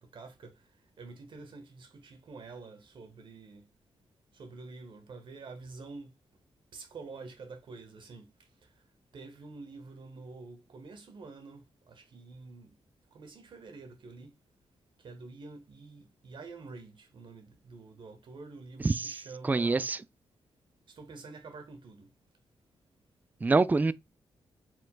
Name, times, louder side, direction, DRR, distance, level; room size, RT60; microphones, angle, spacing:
voice 1, 0.0-3.7 4.3-6.1 6.7-8.8 9.1-12.7 13.1-14.3 15.0-19.9 20.9-22.1, right 3 dB, 60° right, 1.3 m, -48 dB
voice 2, 19.5-20.0 23.4-23.9, right 3 dB, 20° right, 0.3 m, -24 dB
4.7 x 3.7 x 2.2 m
supercardioid pair, 50°, 9 cm